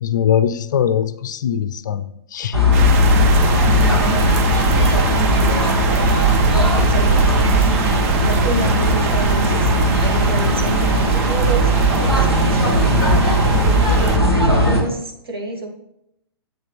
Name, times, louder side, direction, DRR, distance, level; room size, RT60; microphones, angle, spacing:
voice 1, 0.0-2.6, left 9 dB, 50° left, 13 dB, 0.5 m, -21 dB
sound 1, 2.5-14.8, equal, 85° right, 2.0 m, -17 dB
sound 2, 2.7-14.2, right 6 dB, 35° right, 0.8 m, -24 dB
voice 2, 3.6-4.3 4.7-6.2 6.4-13.2 14.4-15.7, right 1 dB, 65° right, 2 dB, 2.0 m, -29 dB
7.9 x 7.4 x 3.3 m, 0.78 s
figure-of-eight pair, 115°, 13 cm